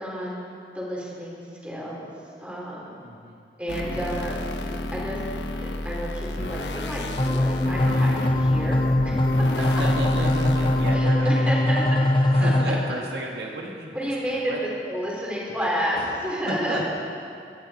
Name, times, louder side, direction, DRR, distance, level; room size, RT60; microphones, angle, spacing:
voice 1, 0.0-2.1 2.4-2.9 3.6-8.8 9.0-9.2 9.7-9.8 10.9-11.8 12.4-12.7 13.9-14.5 14.8-16.9, equal, 5° right, -5 dB, 3.8 m, -31 dB
voice 2, 3.0-3.4 9.5-11.9 12.2-14.6 15.9-16.0 16.5-16.9, right 1 dB, 70° right, -2 dB, 2.1 m, -32 dB
sound 1, 3.7-11.0, left 1 dB, 90° left, 1.2 m, -32 dB
sound 2, 7.2-12.6, left 1 dB, 30° left, 1.0 m, -21 dB
24.0 x 12.5 x 4.4 m, 2.5 s
head